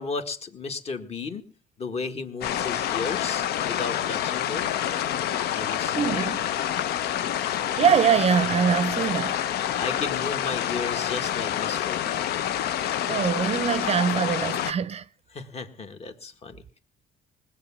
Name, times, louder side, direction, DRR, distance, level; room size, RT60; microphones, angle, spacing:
voice 1, 0.0-1.5 1.8-4.7 5.5-6.3 9.0-9.2 9.8-12.4 15.3-16.8, left 4 dB, 40° left, 1.8 m, -34 dB
sound 1, 2.4-14.7, left 11 dB, 70° left, 0.7 m, -27 dB
voice 2, 5.9-6.4 7.8-9.4 13.1-15.1, right 7 dB, 40° right, 0.6 m, -23 dB
19.5 x 7.4 x 7.2 m
cardioid pair, 110°, 17 cm